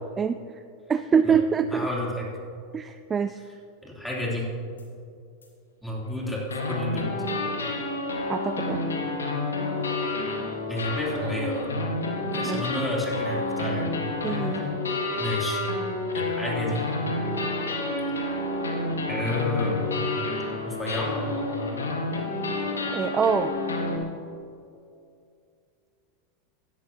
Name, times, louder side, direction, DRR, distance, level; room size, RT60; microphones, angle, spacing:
voice 1, 0.9-1.9 2.7-3.4 8.3-8.8 12.5-12.8 14.2-14.6 22.9-23.5, right 6 dB, 25° right, 11 dB, 0.3 m, -25 dB
voice 2, 1.7-2.3 3.8-4.5 5.8-7.1 10.7-11.7 12.3-13.9 14.2-14.6 15.2-15.6 16.1-16.8 19.1-19.9 20.6-21.1, left 1 dB, 5° left, -4 dB, 3.1 m, -31 dB
sound 1, 4.8-4.9 5.4-5.5 6.5-24.0, left 2 dB, 85° left, 1.5 m, -29 dB
16.0 x 11.0 x 2.9 m, 2.4 s
hypercardioid pair, 90°, 0 cm